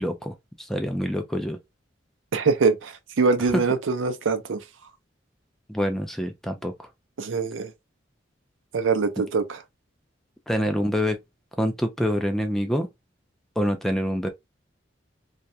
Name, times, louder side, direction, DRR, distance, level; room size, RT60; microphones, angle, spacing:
voice 1, 0.0-1.6 5.7-6.7 10.5-11.2 11.6-12.9 13.6-14.3, equal, ahead, 0.3 m, -26 dB
voice 2, 2.3-4.6 7.2-7.7 8.7-9.6, right 4 dB, 90° right, 0.5 m, -23 dB
2.3 x 2.1 x 2.6 m
head